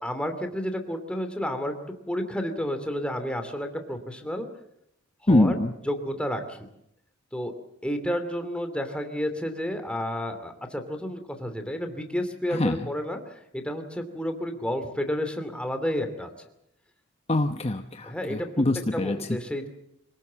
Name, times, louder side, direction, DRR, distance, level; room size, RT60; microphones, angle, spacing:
voice 1, 0.0-1.7 2.1-4.5 5.3-5.6 5.8-6.7 7.3-7.5 7.8-16.3 18.0-18.5 18.9-19.7, equal, 5° left, 6 dB, 2.7 m, -31 dB
voice 2, 5.3-5.7 12.5-12.8 17.3-19.2, left 1 dB, 30° left, 6 dB, 1.0 m, -24 dB
26.0 x 18.5 x 7.6 m, 0.77 s
head